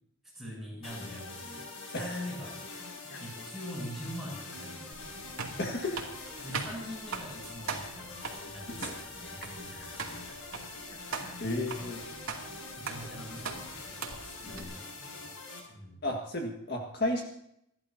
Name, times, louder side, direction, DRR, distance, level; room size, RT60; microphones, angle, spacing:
voice 1, 0.3-1.7 2.0-2.6 3.0-5.3 6.4-8.1 8.4-8.9 9.2-10.4 11.0-11.2 11.5-12.0 12.7-14.0 14.4-15.3 15.7-16.0, equal, ahead, -5 dB, 7.8 m, -43 dB
sound 1, 0.8-15.6, left 3 dB, 75° left, 7.3 m, -44 dB
sound 2, 4.9-14.6, right 5 dB, 75° right, 2.7 m, -41 dB
voice 2, 5.6-6.1 8.7-9.9 10.2-10.4 10.9-12.0 14.5-14.7 16.0-17.2, left 1 dB, 45° left, 1 dB, 1.8 m, -35 dB
28.5 x 12.0 x 2.8 m, 0.75 s
head